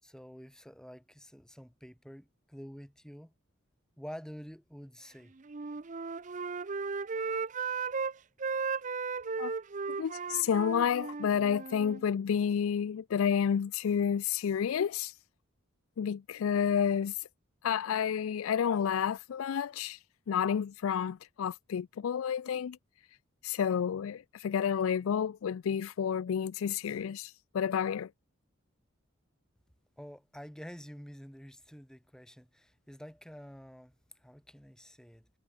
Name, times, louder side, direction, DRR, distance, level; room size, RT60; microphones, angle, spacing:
voice 1, 0.0-3.3 4.0-5.3 30.0-33.9 34.2-35.3, equal, 5° left, 5.2 m, -48 dB
Wind instrument woodwind instrument, 5.4-8.1 8.4-12.0, right 5 dB, 35° right, 0.6 m, -35 dB
voice 2, 10.0-15.1 16.0-17.1 17.6-20.0 20.3-22.8 23.4-28.1, left 7 dB, 80° left, 0.4 m, -30 dB
head